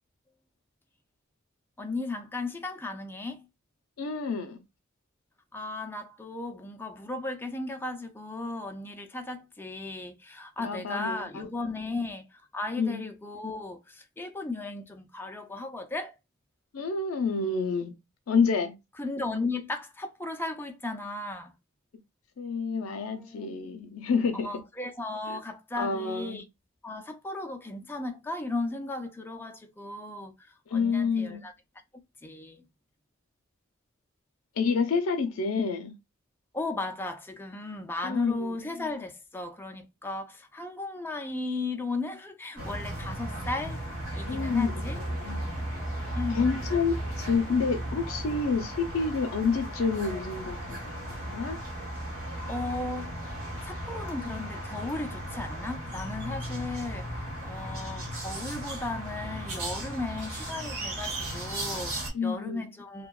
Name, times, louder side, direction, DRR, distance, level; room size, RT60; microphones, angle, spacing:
voice 1, 1.8-3.5 5.5-16.1 19.0-21.5 23.2-23.5 24.3-26.4 26.8-31.5 32.2-32.6 36.5-43.8 44.2-45.1 46.1-46.6 52.5-53.4 53.6-63.1, left 2 dB, 10° left, 0.3 m, -36 dB
voice 2, 4.0-4.6 10.6-11.4 12.8-13.0 16.7-17.9 18.3-18.7 22.4-24.5 25.3-25.4 25.8-26.5 30.7-31.4 34.6-35.9 38.0-38.6 44.3-45.5 46.3-51.6 62.1-62.7, left 5 dB, 70° left, 0.5 m, -29 dB
sound 1, 42.6-62.1, right 1 dB, 75° right, 0.9 m, -36 dB
2.6 x 2.2 x 2.2 m
head